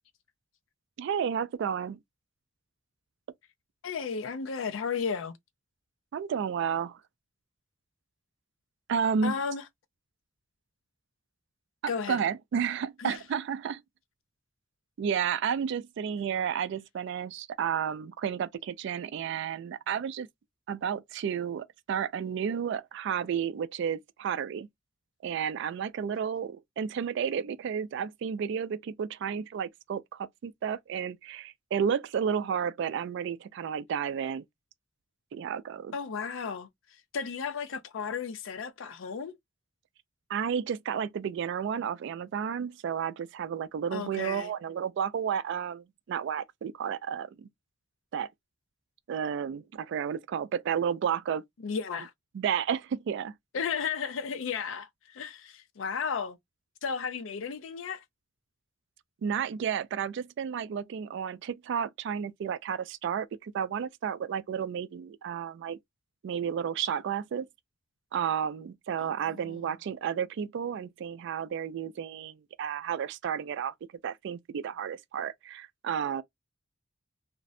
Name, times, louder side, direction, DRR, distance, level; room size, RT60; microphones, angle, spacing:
voice 1, 1.0-2.0 6.1-7.0 8.9-9.4 11.8-13.8 15.0-20.3 20.7-24.7 25.2-34.5 35.3-35.9 40.3-47.5 48.1-48.3 49.1-51.4 52.3-53.4 59.2-65.8 66.2-67.5 68.1-73.7 74.0-76.2, right 7 dB, 65° right, 0.3 m, -32 dB
voice 2, 3.8-5.3 9.2-9.6 11.9-12.2 13.0-13.2 35.9-36.7 37.1-39.3 43.9-44.5 51.6-52.1 53.5-56.4 56.8-58.0 69.0-69.1 69.4-69.5, left 6 dB, 80° left, 0.4 m, -34 dB
2.5 x 2.1 x 2.5 m
head